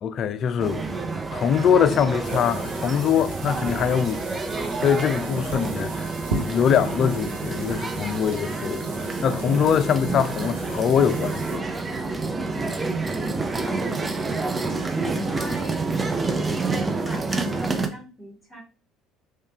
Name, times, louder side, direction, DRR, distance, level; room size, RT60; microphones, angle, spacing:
voice 1, 0.0-0.9 1.3-4.4 4.8-11.7, left 8 dB, 50° left, 0.4 m, -23 dB
sound 1, 0.6-17.9, right 3 dB, 20° right, 0.6 m, -28 dB
sound 2, 2.2-11.6, right 3 dB, 85° right, 0.9 m, -38 dB
voice 2, 13.6-14.4 14.8-15.9 16.9-18.6, equal, 5° left, 1.9 m, -40 dB
3.3 x 3.2 x 2.8 m
hypercardioid pair, 65°, 0 cm